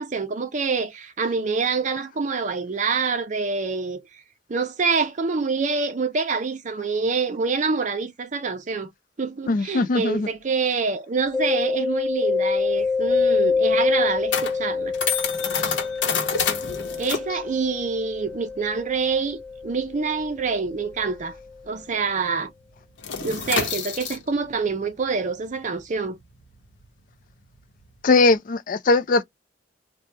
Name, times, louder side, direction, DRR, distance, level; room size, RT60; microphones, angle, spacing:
voice 1, 0.0-4.0 4.5-8.9 9.2-14.9 17.0-21.4 21.7-22.5 23.2-26.2, right 4 dB, 45° right, 0.5 m, -26 dB
voice 2, 9.5-10.3 28.0-29.2, left 3 dB, 50° left, 0.4 m, -20 dB
Mallet percussion, 11.3-20.9, left 4 dB, 5° left, 1.1 m, -26 dB
sound 1, 12.8-21.8 22.0-22.3 22.6-28.3, left 6 dB, 85° left, 0.8 m, -30 dB
3.2 x 2.1 x 2.8 m
head